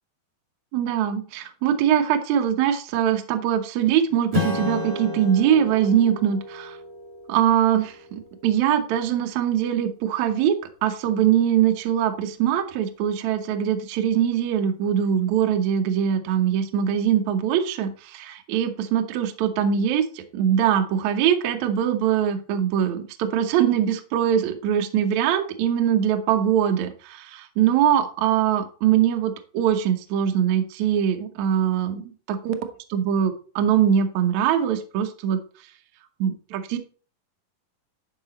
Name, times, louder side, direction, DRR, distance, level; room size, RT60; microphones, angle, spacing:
voice 1, 0.7-6.8 7.3-10.6 10.8-32.5 32.9-35.4 36.2-36.8, right 9 dB, 75° right, 8 dB, 1.7 m, -22 dB
Strum, 4.3-9.2, left 3 dB, 40° right, 0.5 m, -32 dB
10.5 x 5.0 x 4.1 m, 0.40 s
omnidirectional pair, 4.5 m